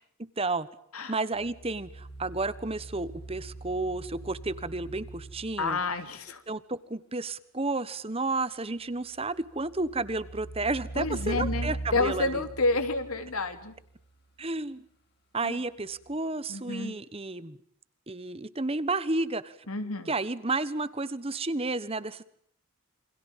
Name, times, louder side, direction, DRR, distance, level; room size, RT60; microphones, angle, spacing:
voice 1, 0.2-0.7 1.1-5.8 6.5-12.5 14.4-14.8 15.3-17.6 18.1-19.5 20.1-22.2, right 3 dB, 25° right, 16 dB, 1.2 m, -32 dB
sound 1, 1.3-6.0 9.3-13.9 16.0-16.1, right 2 dB, 50° left, 5.0 m, -41 dB
voice 2, 5.6-6.4 10.9-13.7 15.4-15.6 16.5-16.9 19.7-20.1, left 3 dB, 90° left, 9 dB, 3.1 m, -29 dB
28.5 x 25.5 x 7.3 m, 0.66 s
head